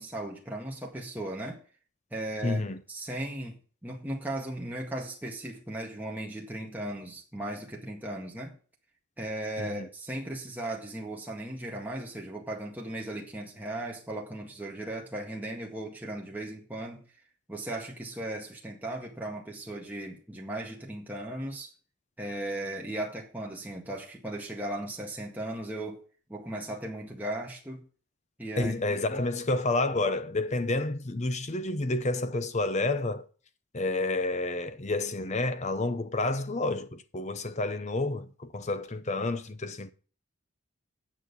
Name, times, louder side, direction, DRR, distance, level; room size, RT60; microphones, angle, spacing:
voice 1, 0.0-1.6 2.1-2.6 2.9-3.6 3.8-8.6 9.2-17.1 17.5-21.7 22.2-26.0 26.3-27.8 28.4-29.2, right 1 dB, 10° right, 1.8 m, -37 dB
voice 2, 2.4-2.8 9.6-9.9 28.6-33.3 33.7-39.9, left 2 dB, 35° left, 0.7 m, -29 dB
9.0 x 6.4 x 8.1 m
head